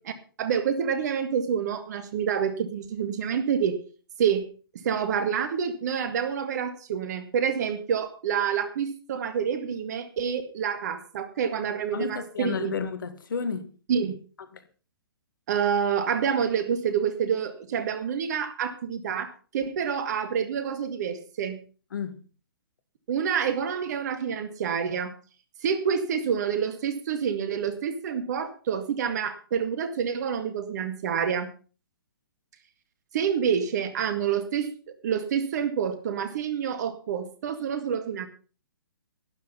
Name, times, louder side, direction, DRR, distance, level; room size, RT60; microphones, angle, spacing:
voice 1, 0.4-3.8 4.2-4.4 4.7-12.7 13.9-14.1 15.5-21.6 23.1-25.1 25.6-31.5 33.1-38.3, right 7 dB, 50° right, 2.0 m, -28 dB
voice 2, 11.9-13.7 14.5-14.6 21.9-22.2, left 6 dB, 60° left, 1.8 m, -32 dB
12.0 x 10.5 x 5.6 m
figure-of-eight pair, 125°, 12 cm